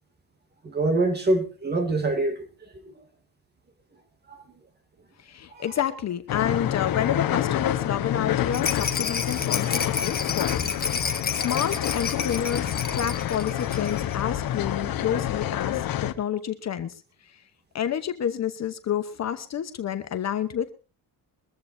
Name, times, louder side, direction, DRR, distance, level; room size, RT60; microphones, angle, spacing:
voice 1, 0.6-2.5 2.9-3.0 4.3-4.4 5.5-5.6 13.5-13.6, right 2 dB, 25° right, 2.4 m, -25 dB
voice 2, 5.2-10.7 11.3-17.0 17.7-20.7, left 9 dB, 40° left, 1.0 m, -29 dB
sound 1, 6.3-16.1, left 11 dB, 60° left, 1.2 m, -28 dB
Rattle, 8.5-14.2 14.5-14.6 14.8-14.9, left 5 dB, 25° left, 1.4 m, -31 dB
22.5 x 14.5 x 2.7 m
cardioid pair, 160°, 40 cm